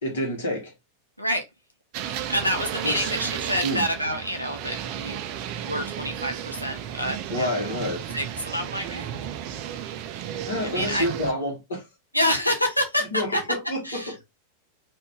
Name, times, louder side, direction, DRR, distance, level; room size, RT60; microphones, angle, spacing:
voice 1, 0.0-0.7 2.8-3.1 3.6-3.8 7.3-8.1 10.5-11.8 13.1-14.2, left 1 dB, 65° left, 1.3 m, -28 dB
sound 1, 1.9-11.3, right 10 dB, 45° right, 0.4 m, -33 dB
voice 2, 2.0-5.2 5.6-7.7 8.1-9.1 10.6-11.1 12.1-13.4 13.8-14.2, equal, 90° left, 0.5 m, -27 dB
2.7 x 2.5 x 3.4 m
figure-of-eight pair, 90°, 0 cm